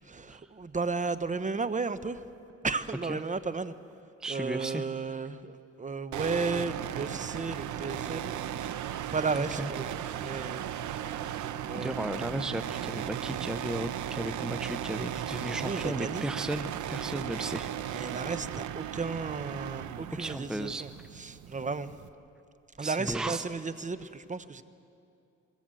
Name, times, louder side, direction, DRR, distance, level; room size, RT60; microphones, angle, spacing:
voice 1, 0.0-2.2 2.6-3.7 4.3-8.3 9.1-10.7 11.6-12.0 15.6-16.2 17.9-22.0 22.8-24.6, right 4 dB, 25° right, 13 dB, 0.9 m, -34 dB
voice 2, 4.2-4.9 9.4-9.7 11.7-18.2 20.2-20.8 22.8-23.4, right 1 dB, ahead, 10 dB, 0.7 m, -35 dB
sound 1, 6.1-22.1, right 10 dB, 75° right, 0.9 m, -36 dB
23.0 x 23.0 x 7.7 m, 2.6 s
cardioid pair, 90°, 30 cm